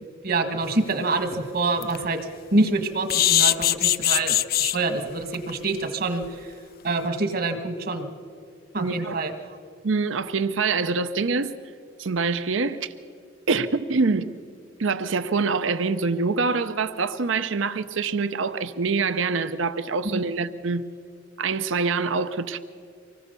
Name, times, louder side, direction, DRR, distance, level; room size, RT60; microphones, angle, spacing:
voice 1, 0.2-2.2 2.5-6.5 6.8-8.1 8.7-9.6 20.0-20.2, right 2 dB, 50° right, 1.6 m, -26 dB
sound 1, 0.8-0.9 1.3-1.4 1.8-2.0 3.1-4.8 5.3-5.5 5.8-5.9 6.2-6.3, left 13 dB, 50° left, 0.5 m, -21 dB
voice 2, 8.8-9.2 9.8-11.5 12.0-12.9 13.5-14.3 14.8-20.8 21.4-22.6, right 4 dB, 75° right, 0.6 m, -25 dB
25.0 x 19.5 x 6.8 m
head